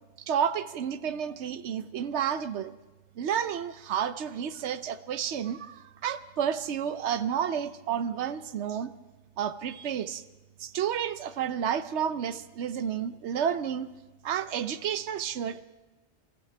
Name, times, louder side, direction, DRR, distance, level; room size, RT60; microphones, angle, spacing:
voice 1, 0.3-2.7 3.2-8.9 9.4-10.2 10.6-13.9 14.2-15.6, right 8 dB, 80° right, 13 dB, 1.0 m, -31 dB
27.0 x 14.5 x 3.3 m, 1.1 s
omnidirectional pair, 1.1 m